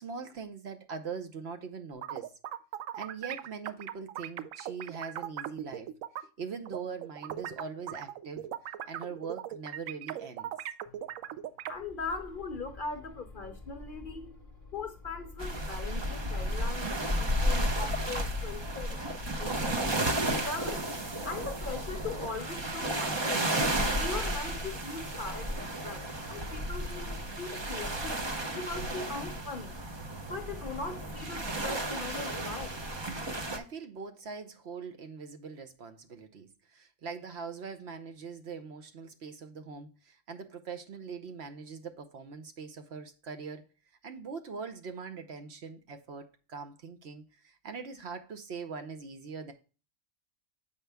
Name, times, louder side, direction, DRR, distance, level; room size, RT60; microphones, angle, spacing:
voice 1, 0.0-2.3 2.9-5.9 6.2-8.6 8.9-10.5 33.5-43.6 44.0-49.5, right 5 dB, 60° right, 0.9 m, -42 dB
sound 1, 1.9-6.2 6.7-11.7, right 11 dB, 85° right, 1.0 m, -39 dB
voice 2, 11.7-14.3 14.7-19.0 19.4-19.9 20.4-20.8 21.3-23.4 24.0-28.2 28.5-29.7 30.3-32.8, left 3 dB, 50° left, 0.7 m, -40 dB
sound 2, 11.7-20.6, left 1 dB, 15° right, 1.3 m, -51 dB
sound 3, 15.4-33.6, right 1 dB, 40° right, 0.4 m, -33 dB
7.3 x 5.3 x 3.4 m
omnidirectional pair, 1.4 m